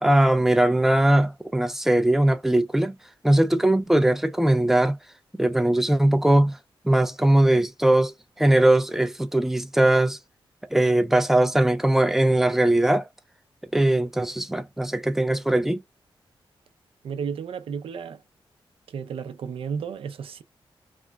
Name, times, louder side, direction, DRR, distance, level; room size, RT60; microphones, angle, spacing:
voice 1, 0.0-3.0 3.2-5.0 5.3-6.6 6.8-10.2 10.7-13.1 13.7-15.8, right 1 dB, 5° right, 0.4 m, -20 dB
voice 2, 17.0-18.2 18.9-20.4, right 6 dB, 85° right, 0.5 m, -33 dB
3.2 x 2.1 x 2.2 m
wide cardioid pair, 115°, 9 cm